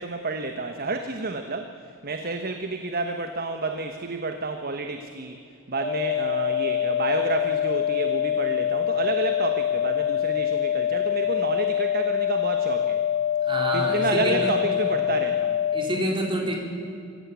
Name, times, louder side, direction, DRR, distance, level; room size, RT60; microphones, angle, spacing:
voice 1, 0.0-5.4 5.7-13.0 13.7-15.6, right 3 dB, 45° right, 6 dB, 1.2 m, -30 dB
sound 1, 5.8-15.8, left 10 dB, 80° right, 7.2 m, -25 dB
voice 2, 13.4-14.5 15.7-16.6, right 1 dB, 25° right, 0 dB, 3.9 m, -27 dB
24.5 x 15.5 x 8.4 m, 2.5 s
head